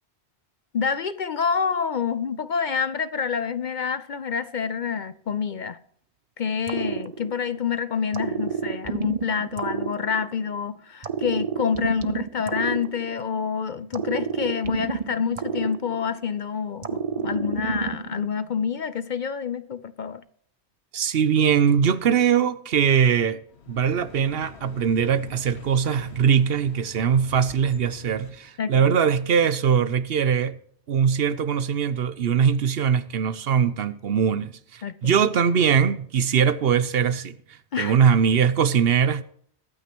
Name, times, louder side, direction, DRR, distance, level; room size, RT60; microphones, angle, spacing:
voice 1, 0.7-5.8 6.4-20.2 28.6-28.9 34.8-35.2 37.7-38.0, left 6 dB, 55° left, 0.6 m, -27 dB
sound 1, 6.7-7.7 8.1-10.6 11.0-13.5 13.9-16.4 16.8-18.3, right 6 dB, 40° right, 0.7 m, -30 dB
voice 2, 20.9-23.4 23.7-30.6 30.9-37.4 37.8-39.2, right 7 dB, 65° right, 0.9 m, -21 dB
sound 2, 23.4-28.5, left 6 dB, 75° left, 1.2 m, -45 dB
22.5 x 9.3 x 3.0 m
omnidirectional pair, 1.1 m